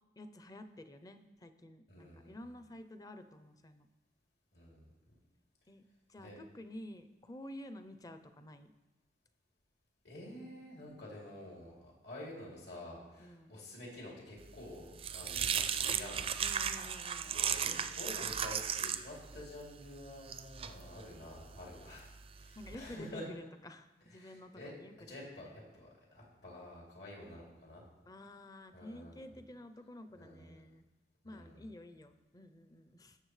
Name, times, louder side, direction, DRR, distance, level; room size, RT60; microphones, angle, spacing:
voice 1, 0.2-3.9 5.7-5.8 6.1-8.7 13.2-13.6 16.4-17.4 22.6-25.6 28.0-30.9 31.2-33.2, left 1 dB, 20° left, 9 dB, 0.5 m, -51 dB
voice 2, 1.9-2.4 4.5-4.9 6.2-6.4 10.0-16.3 17.3-23.3 24.1-24.7 25.1-27.8 28.7-29.3 30.1-30.6 31.2-31.7, left 1 dB, 70° left, -3 dB, 3.0 m, -49 dB
sound 1, 14.5-22.7, right 8 dB, 30° right, 0.4 m, -37 dB
18.5 x 7.0 x 3.2 m, 1.1 s
head